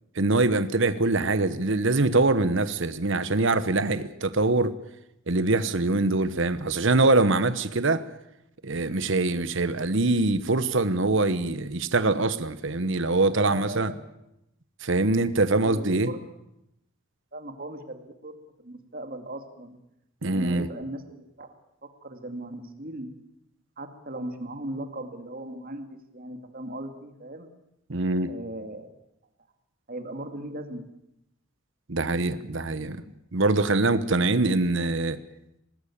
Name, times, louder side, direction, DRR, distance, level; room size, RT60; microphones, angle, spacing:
voice 1, 0.2-4.7 5.3-8.0 8.6-13.9 14.8-16.1 20.2-20.7 27.9-28.3 31.9-33.0 33.3-35.2, right 2 dB, 60° right, 1.1 m, -23 dB
voice 2, 13.3-14.1 15.0-15.3 15.6-16.3 17.3-19.8 20.2-21.5 21.8-23.1 23.8-27.5 28.2-28.9 29.9-30.9 33.7-34.3, right 1 dB, 45° right, 2.3 m, -38 dB
20.0 x 18.5 x 8.7 m
head